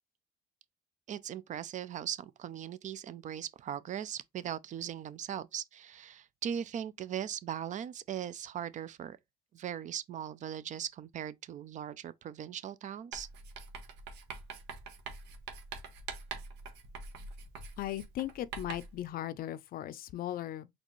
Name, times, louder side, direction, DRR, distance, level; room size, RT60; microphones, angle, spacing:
voice 1, 1.1-9.2 9.5-13.3, right 9 dB, 45° right, 0.4 m, -39 dB
Writing, 13.1-19.0, right 4 dB, 85° right, 1.0 m, -45 dB
voice 2, 17.8-20.7, left 13 dB, 60° left, 0.5 m, -37 dB
4.1 x 2.9 x 3.0 m
cardioid pair, 110°, 17 cm